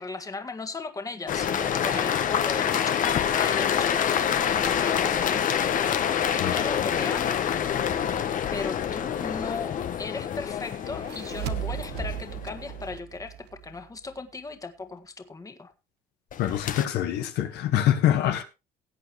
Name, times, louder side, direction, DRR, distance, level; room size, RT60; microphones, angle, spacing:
voice 1, 0.0-7.7 8.5-15.7, left 3 dB, 20° left, 1.7 m, -37 dB
sound 1, 1.3-12.8 16.3-16.9, left 8 dB, 50° left, 1.2 m, -27 dB
sound 2, 10.8-14.2, right 13 dB, 85° right, 1.0 m, -36 dB
voice 2, 16.4-18.4, left 11 dB, 80° left, 1.5 m, -24 dB
17.5 x 8.6 x 3.2 m
cardioid pair, 110°, 17 cm